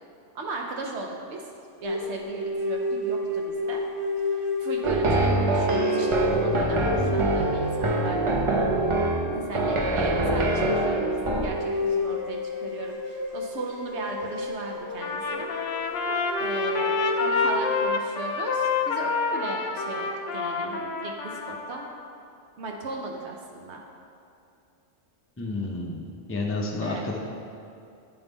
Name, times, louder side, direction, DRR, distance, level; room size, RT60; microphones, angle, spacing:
voice 1, 0.3-1.4 1.8-3.8 4.3-8.7 9.3-15.5 16.4-16.9 17.2-21.9 22.6-23.8 26.8-27.1, right 3 dB, 70° right, 1 dB, 0.9 m, -36 dB
sound 1, 1.8-10.5 10.8-10.9 11.4-17.8, left 2 dB, 20° right, 1.1 m, -31 dB
sound 2, 4.8-11.5, right 2 dB, 35° right, 0.5 m, -24 dB
Trumpet, 15.0-21.9, left 4 dB, 80° left, 0.9 m, -28 dB
voice 2, 25.4-27.2, left 2 dB, 20° left, -1 dB, 0.4 m, -30 dB
8.9 x 3.6 x 4.0 m, 2.6 s
omnidirectional pair, 1.3 m